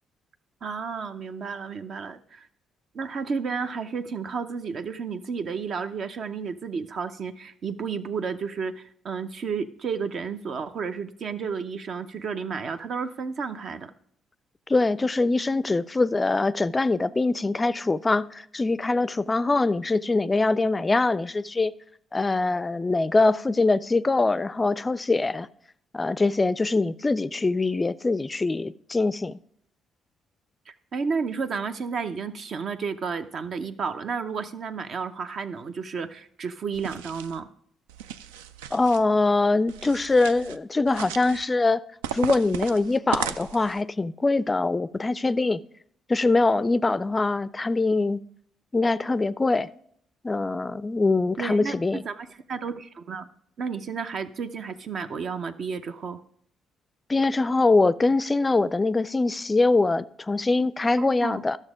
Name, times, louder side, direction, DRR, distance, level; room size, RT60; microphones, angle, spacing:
voice 1, 0.6-2.5 2.9-13.9 30.7-37.5 51.4-51.8 52.0-53.3 53.6-56.2 61.0-61.4, right 5 dB, 55° right, 0.7 m, -32 dB
voice 2, 14.7-21.7 22.1-25.5 25.9-29.4 38.7-41.8 42.1-45.6 46.1-48.2 48.7-49.7 50.2-52.0 57.1-61.6, left 3 dB, 25° left, 0.4 m, -23 dB
sound 1, 36.7-37.4 37.9-39.0 39.7-40.6 40.9-41.4 42.0-43.8, right 9 dB, 85° right, 0.3 m, -35 dB
12.5 x 6.5 x 4.9 m
hypercardioid pair, 50°, 0 cm